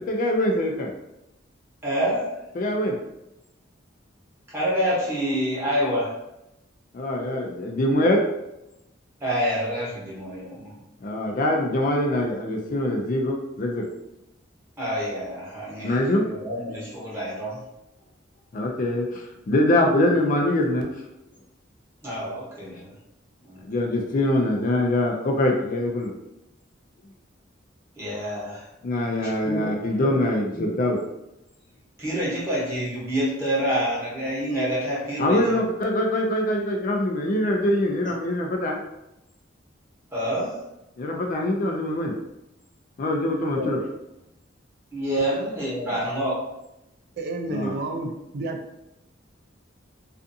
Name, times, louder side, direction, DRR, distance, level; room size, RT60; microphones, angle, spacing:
voice 1, 0.1-0.9 2.6-3.0 6.9-8.2 11.0-13.8 15.8-16.2 18.5-20.9 23.7-26.1 28.8-31.0 35.2-38.8 41.0-42.1 43.0-43.8 47.5-47.7, left 1 dB, 45° left, 1 dB, 0.4 m, -23 dB
voice 2, 1.8-2.2 4.5-6.1 9.2-10.7 14.8-17.6 22.0-22.9 23.5-23.6 28.0-28.6 29.2-30.2 30.5-30.7 32.0-35.6 40.1-40.5 43.5-43.7 44.9-46.3, equal, 15° right, -7 dB, 0.9 m, -27 dB
voice 3, 47.2-48.6, right 2 dB, 55° right, 4 dB, 0.4 m, -31 dB
2.5 x 2.4 x 2.6 m, 0.90 s
head